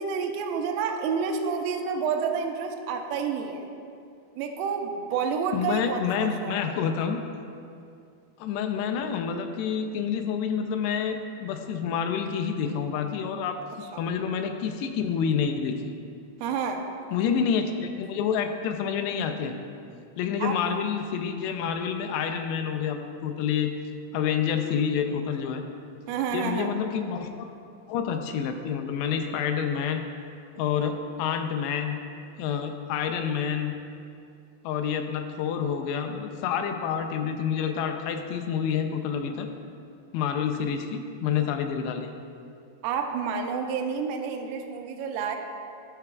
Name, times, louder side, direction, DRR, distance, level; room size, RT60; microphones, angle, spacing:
voice 1, 0.0-3.7 4.4-6.8 16.4-16.9 20.4-20.6 26.1-26.7 42.8-45.4, right 6 dB, 90° right, 3 dB, 2.1 m, -29 dB
voice 2, 5.5-7.2 8.4-15.9 17.1-19.6 20.2-23.7 24.1-25.6 26.3-27.5 27.9-30.0 30.6-32.0 32.4-33.7 34.6-39.5 40.1-42.1, left 7 dB, 85° left, 5 dB, 2.7 m, -28 dB
16.5 x 5.8 x 2.3 m, 2.4 s
omnidirectional pair, 4.8 m